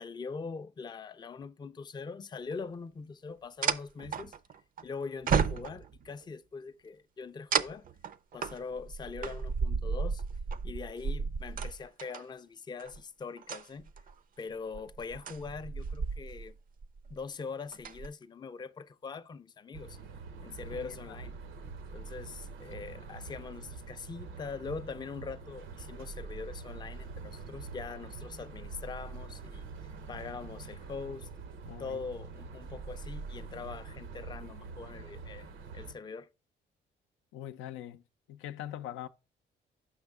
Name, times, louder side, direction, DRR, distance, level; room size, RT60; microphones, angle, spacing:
voice 1, 0.0-4.3 4.8-7.8 8.3-10.2 10.6-13.9 14.4-16.6 17.1-20.0 20.4-21.4 21.9-29.7 30.1-31.3 31.8-36.3, left 5 dB, 20° left, 0.4 m, -42 dB
sound 1, 2.5-2.6 3.6-4.8 5.3-6.1 7.5-12.2 12.8-13.0 13.4-14.1 14.7-16.5 16.8-17.2 17.6-18.1, right 6 dB, 45° right, 0.5 m, -33 dB
sound 2, 19.7-35.9, right 4 dB, 85° right, 0.9 m, -45 dB
voice 2, 20.7-21.2 31.7-32.0 37.3-38.0 38.3-39.1, left 12 dB, 90° left, 0.5 m, -42 dB
6.2 x 5.7 x 3.6 m
cardioid pair, 90°, 20 cm